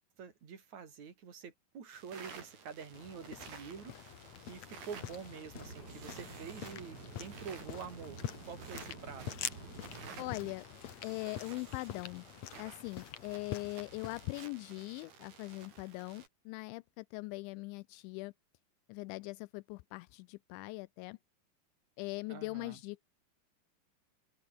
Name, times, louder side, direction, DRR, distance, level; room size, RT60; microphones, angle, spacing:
voice 1, 0.2-9.3 22.3-22.8, right 6 dB, 40° right, 4.3 m, -47 dB
sound 1, 1.9-16.3, right 6 dB, 55° right, 6.7 m, -54 dB
sound 2, 2.9-14.4, left 10 dB, 65° left, 1.7 m, -46 dB
Aircraft / Engine, 5.5-10.5, right 6 dB, 75° right, 0.9 m, -51 dB
voice 2, 10.2-10.7 11.0-12.2 12.6-18.3 18.9-21.2 22.0-23.0, left 24 dB, 85° left, 2.9 m, -41 dB
open air
omnidirectional pair, 5.3 m